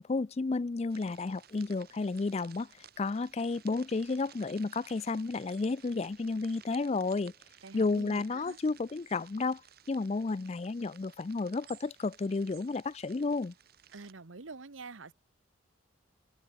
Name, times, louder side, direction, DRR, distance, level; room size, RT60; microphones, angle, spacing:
voice 1, 0.0-2.7 3.0-7.3 7.7-9.6 9.9-13.5, left 3 dB, 35° left, 0.4 m, -32 dB
sound 1, 0.9-14.1, right 10 dB, 50° right, 1.2 m, -57 dB
voice 2, 7.6-8.6 13.9-15.1, right 3 dB, 85° right, 1.2 m, -47 dB
head